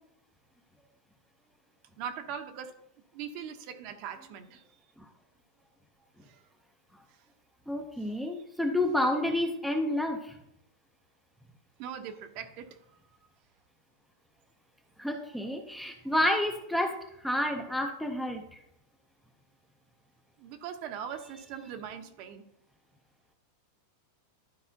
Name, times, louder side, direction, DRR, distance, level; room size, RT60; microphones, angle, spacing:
voice 1, 2.0-2.8 3.1-4.7 6.2-6.4 8.0-8.1 11.8-12.8 20.4-22.4, right 8 dB, 45° right, 7 dB, 0.8 m, -41 dB
voice 2, 7.7-10.4 15.0-18.4, left 1 dB, ahead, 4 dB, 0.6 m, -29 dB
12.0 x 4.8 x 2.7 m, 0.81 s
supercardioid pair, 155°, 0 cm